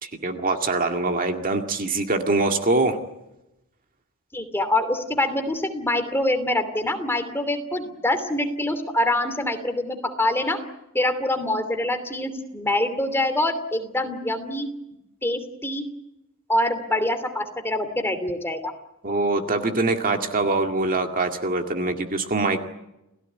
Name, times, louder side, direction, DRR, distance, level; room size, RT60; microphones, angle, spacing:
voice 1, 0.0-3.0 19.0-22.6, right 3 dB, 40° right, 5 dB, 2.0 m, -23 dB
voice 2, 4.3-10.6 10.9-14.7 15.2-15.8 16.5-18.7, left 1 dB, 10° left, 7 dB, 2.8 m, -25 dB
29.5 x 17.5 x 9.4 m, 0.91 s
head